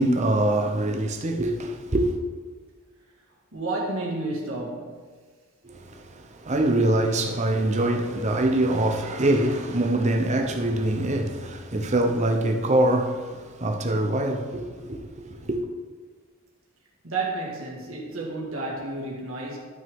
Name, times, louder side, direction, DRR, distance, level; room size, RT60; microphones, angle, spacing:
voice 1, 0.0-2.2 5.6-15.6, right 1 dB, 35° right, 0.8 m, -24 dB
voice 2, 3.5-5.0 17.0-19.6, right 2 dB, 70° right, 2.0 m, -31 dB
12.5 x 6.1 x 3.6 m
head